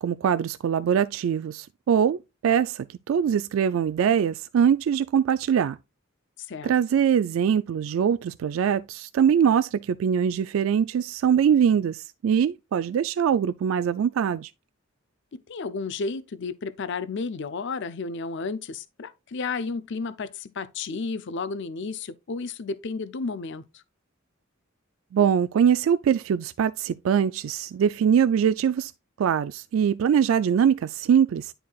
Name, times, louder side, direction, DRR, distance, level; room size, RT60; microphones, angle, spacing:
voice 1, 0.0-2.2 2.4-5.8 6.6-14.5 25.1-28.9 29.2-31.5, right 8 dB, 75° right, 0.3 m, -22 dB
voice 2, 6.4-6.7 15.3-23.8, left 4 dB, 60° left, 0.5 m, -32 dB
10.0 x 4.6 x 2.3 m
head